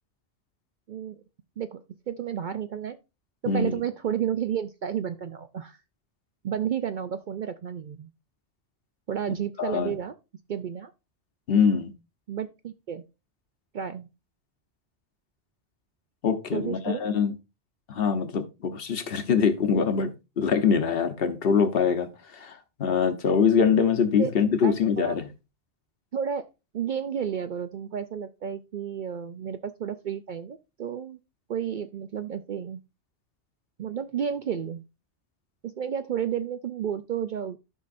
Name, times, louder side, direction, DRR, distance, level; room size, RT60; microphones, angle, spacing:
voice 1, 1.6-3.0 3.4-5.8 6.4-8.1 9.1-10.1 10.5-10.9 12.3-13.0 13.7-14.1 16.5-17.1 24.2-25.2 26.1-26.5 26.7-31.2 31.5-32.8 33.8-34.8 35.6-37.6, right 8 dB, 60° right, 0.5 m, -31 dB
voice 2, 3.5-3.8 9.6-10.0 11.5-11.9 16.2-17.3 17.9-20.1 20.4-25.3, left 6 dB, 60° left, 1.1 m, -24 dB
12.5 x 5.6 x 2.5 m
omnidirectional pair, 1.2 m